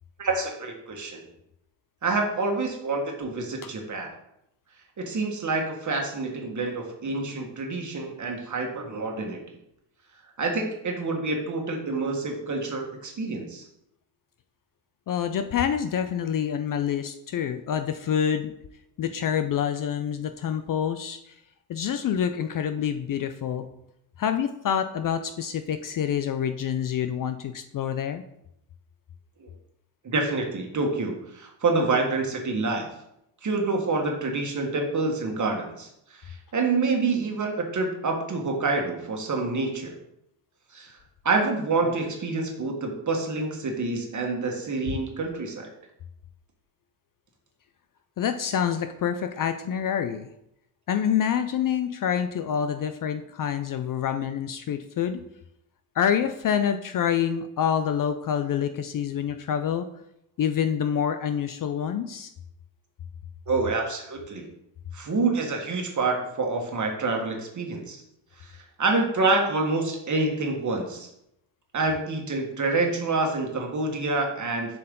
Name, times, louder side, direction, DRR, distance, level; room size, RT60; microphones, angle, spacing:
voice 1, 0.2-1.2 2.0-4.1 5.0-9.4 10.4-13.6 29.4-29.5 30.0-32.9 33.4-40.0 40.7-41.0 41.2-45.7 63.5-64.5 64.9-68.0 68.4-68.5 68.8-71.1 71.7-74.8, right 3 dB, 35° right, 2 dB, 1.6 m, -27 dB
voice 2, 15.1-18.5 19.0-21.4 21.7-23.7 24.2-28.2 44.9-45.0 48.2-50.3 50.9-55.2 56.0-59.9 60.4-62.3, left 8 dB, 45° left, 8 dB, 0.5 m, -27 dB
7.2 x 4.6 x 3.8 m, 0.79 s
cardioid pair, 95°, 48 cm